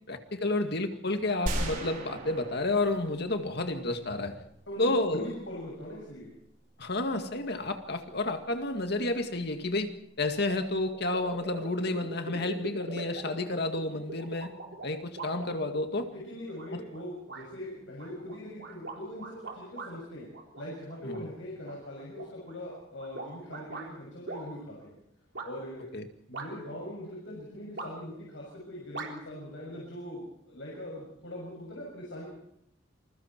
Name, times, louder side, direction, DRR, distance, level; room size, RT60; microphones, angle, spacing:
voice 1, 0.1-4.4 4.8-5.3 6.8-9.9 10.2-14.5 14.8-16.1 16.7-16.8 21.0-21.3 25.9-26.1, left 2 dB, 60° left, 6 dB, 2.1 m, -30 dB
sound 1, 1.5-4.4, right 1 dB, 45° right, 4.5 m, -36 dB
voice 2, 4.7-6.3 16.1-20.3 20.6-24.9 25.4-25.9 26.3-32.3, left 1 dB, 80° left, -3 dB, 7.2 m, -41 dB
sound 2, 10.5-10.6 10.9-16.0 16.5-17.0 17.3-17.4 18.0-19.9 20.3-21.2 21.6-23.9 24.3-24.4 25.3-25.5 26.3-26.8 27.8-28.2 28.9-29.1, right 2 dB, 70° right, 3.9 m, -41 dB
28.0 x 21.5 x 4.6 m, 0.73 s
head